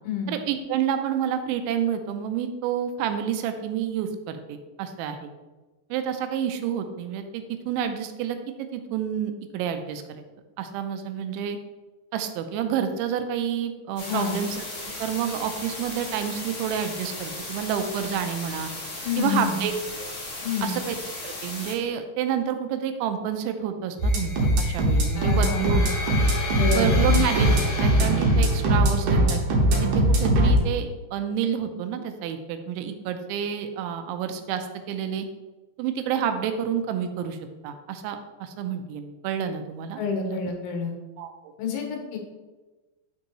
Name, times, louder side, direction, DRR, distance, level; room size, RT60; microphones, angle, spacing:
voice 1, 0.3-5.3 5.9-10.2 10.6-11.6 12.1-14.7 15.0-18.7 19.2-19.7 20.0-20.1 20.6-21.0 21.2-25.9 26.7-27.5 27.8-35.3 35.8-37.4 37.6-40.4 41.2-41.3, right 8 dB, 90° right, 7 dB, 3.0 m, -29 dB
voice 2, 14.0-14.4 19.0-19.7 20.4-20.8 25.2-25.8 26.6-27.3 40.0-40.9 41.6-42.2, left 5 dB, 85° left, 2 dB, 3.6 m, -28 dB
sound 1, 14.0-21.7, left 2 dB, 35° left, 2.0 m, -36 dB
sound 2, 24.0-29.0, left 3 dB, 55° left, 1.6 m, -33 dB
sound 3, 24.0-30.6, right 1 dB, 65° right, 2.0 m, -20 dB
11.5 x 4.6 x 3.0 m, 1.2 s
omnidirectional pair, 5.2 m